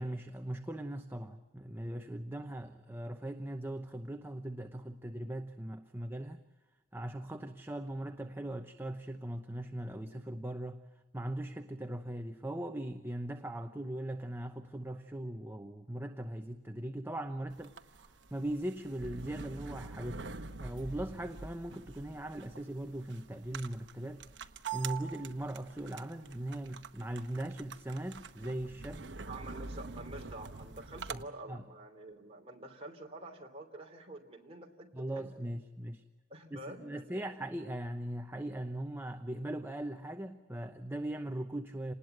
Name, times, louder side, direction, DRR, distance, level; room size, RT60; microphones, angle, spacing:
voice 1, 0.0-6.4 6.9-10.9 11.1-20.3 20.6-24.3 24.7-29.1 31.1-31.2 31.5-31.6 34.9-36.0 36.5-41.9, right 1 dB, 10° right, 0.9 m, -39 dB
sound 1, 17.5-31.2, right 5 dB, 65° right, 1.1 m, -45 dB
voice 2, 29.3-34.9 35.1-35.5 36.3-37.2, right 2 dB, 30° right, 3.1 m, -48 dB
28.0 x 20.0 x 7.9 m
head